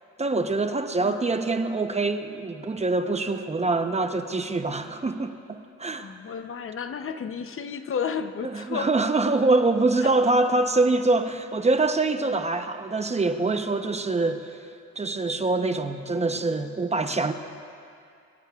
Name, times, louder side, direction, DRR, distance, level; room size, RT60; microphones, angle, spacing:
voice 1, 0.2-6.1 8.4-14.7 15.0-17.3, right 3 dB, 20° right, 7 dB, 0.8 m, -24 dB
voice 2, 6.0-8.9 10.0-10.1, left 6 dB, 45° left, 9 dB, 0.8 m, -32 dB
24.5 x 16.5 x 2.4 m, 2.4 s
cardioid pair, 90°, 30 cm